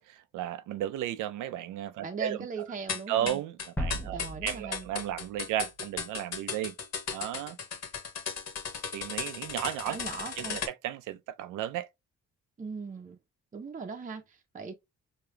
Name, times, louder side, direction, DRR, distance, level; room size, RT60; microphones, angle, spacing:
voice 1, 0.0-2.4 3.1-6.7 7.1-7.6 8.9-10.0 10.4-11.9, right 12 dB, 85° right, 0.5 m, -34 dB
voice 2, 2.0-3.4 4.0-4.9 9.9-10.6 12.6-13.2 13.5-14.8, right 5 dB, 25° right, 0.7 m, -39 dB
sound 1, 2.9-10.7, left 6 dB, 60° left, 1.4 m, -36 dB
sound 2, 3.8-6.3, equal, 5° left, 0.8 m, -38 dB
5.0 x 2.8 x 2.2 m
cardioid pair, 90°, 30 cm